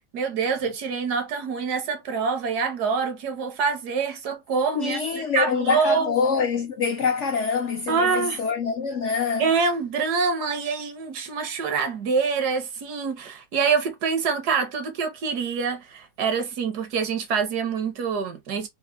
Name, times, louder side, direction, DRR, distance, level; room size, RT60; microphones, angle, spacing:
voice 1, 0.1-6.2 7.9-8.4 9.4-18.7, right 5 dB, 70° right, 1.5 m, -25 dB
voice 2, 4.7-9.5, left 5 dB, 65° left, 0.7 m, -25 dB
4.7 x 2.1 x 3.7 m
omnidirectional pair, 1.8 m